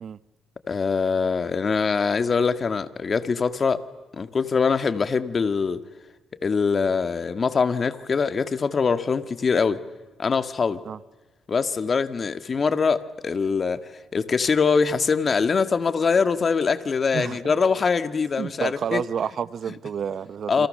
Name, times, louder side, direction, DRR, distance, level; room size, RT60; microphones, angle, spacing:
voice 1, 0.7-3.8 4.2-5.8 6.4-9.8 10.2-10.8 11.5-19.0 19.7-19.8 20.5-20.7, left 5 dB, 40° left, 1.8 m, -23 dB
voice 2, 18.4-20.7, right 7 dB, 55° right, 0.8 m, -29 dB
29.5 x 27.0 x 6.7 m
cardioid pair, 90°, 0 cm